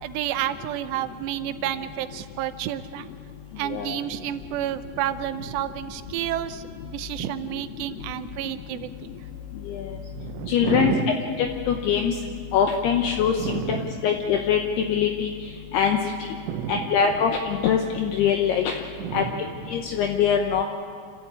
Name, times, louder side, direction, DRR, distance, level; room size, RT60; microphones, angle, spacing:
voice 1, 0.0-3.1 3.6-9.1 9.9-11.2 13.4-14.0 16.5-17.0 19.0-19.7, right 12 dB, 80° right, 10 dB, 2.7 m, -30 dB
voice 2, 3.7-4.0 9.7-9.9 10.5-12.1 12.5-13.8 14.0-14.6 14.9-15.3 15.7-16.3 16.7-18.7 19.1-19.2 19.7-20.6, left 7 dB, 75° left, 3 dB, 2.6 m, -23 dB
28.5 x 13.5 x 8.7 m, 2.1 s
omnidirectional pair, 5.5 m